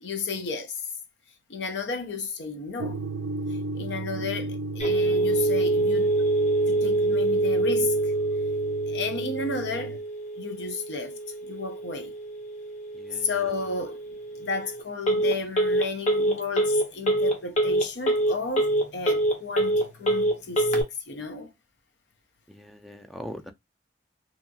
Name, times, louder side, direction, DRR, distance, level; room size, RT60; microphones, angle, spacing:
voice 1, 0.0-0.8 1.5-3.0 3.7-6.2 6.7-8.1 8.9-10.0 10.4-11.1 11.4-12.1 13.1-14.0 14.3-21.5, left 4 dB, 80° left, 0.6 m, -33 dB
sound 1, 2.8-10.0, right 3 dB, 85° right, 0.4 m, -35 dB
Telephone, 4.8-20.8, right 1 dB, 40° left, 0.7 m, -25 dB
voice 2, 12.9-13.3 22.5-23.5, equal, ahead, 0.3 m, -41 dB
2.7 x 2.3 x 2.6 m
head